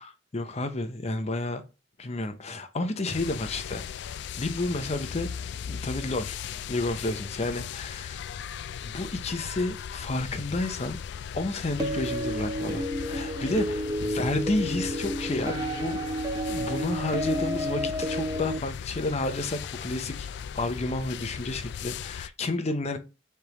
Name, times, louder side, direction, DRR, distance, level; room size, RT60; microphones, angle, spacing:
voice 1, 0.3-1.6 2.0-3.8 4.4-5.3 5.7-6.4 6.7-8.3 8.8-11.0 11.3-16.0 16.5-20.3 20.6-23.0, left 2 dB, 35° left, 0.7 m, -31 dB
sound 1, 3.1-22.3, left 8 dB, 65° left, 0.3 m, -38 dB
sound 2, 11.8-18.6, equal, 20° right, 0.5 m, -31 dB
4.9 x 3.4 x 2.9 m
head